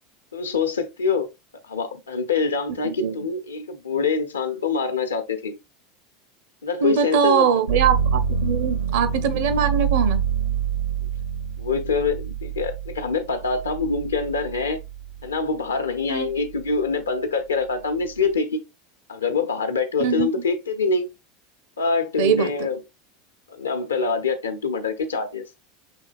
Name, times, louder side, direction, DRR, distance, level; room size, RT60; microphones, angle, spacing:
voice 1, 0.3-1.3 1.7-5.6 6.6-7.5 11.6-14.8 15.2-18.7 19.1-21.1 21.8-22.8 23.5-25.5, left 4 dB, 80° left, 0.7 m, -25 dB
voice 2, 2.8-3.2 6.8-10.2 16.1-16.3 20.0-20.3 22.2-22.5, right 7 dB, 60° right, 0.7 m, -22 dB
sound 1, 7.7-15.5 16.0-16.8, right 7 dB, 80° right, 2.0 m, -27 dB
6.2 x 3.3 x 2.4 m
figure-of-eight pair, 80°, 0 cm